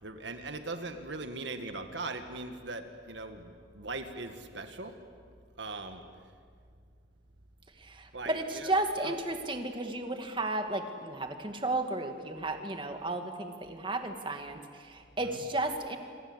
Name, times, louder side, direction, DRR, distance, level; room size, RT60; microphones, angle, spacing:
voice 1, 0.0-4.9 5.6-6.0 8.1-8.7 9.0-9.2 15.2-15.4, right 3 dB, 70° right, 7 dB, 1.8 m, -40 dB
voice 2, 7.9-14.6 14.9-16.0, right 2 dB, 25° right, 5 dB, 2.0 m, -33 dB
27.5 x 25.0 x 8.1 m, 2.1 s
head